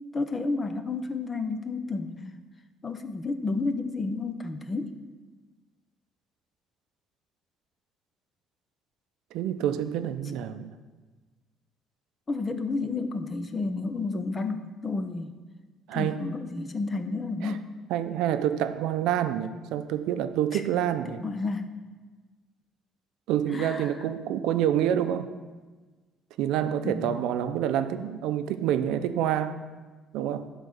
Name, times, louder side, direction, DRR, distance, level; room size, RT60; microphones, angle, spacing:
voice 1, 0.0-2.4 2.8-4.9 12.3-15.4 15.9-17.7 20.5-20.6 21.2-21.8 23.5-23.9 26.8-27.2, left 3 dB, 20° left, 9 dB, 0.5 m, -31 dB
voice 2, 9.3-10.8 15.9-16.3 17.4-17.6 17.9-21.2 23.3-25.3 26.4-29.6 30.1-30.5, right 10 dB, 80° right, 10 dB, 0.5 m, -27 dB
11.0 x 4.0 x 6.5 m, 1.3 s
cardioid pair, 165°, 0 cm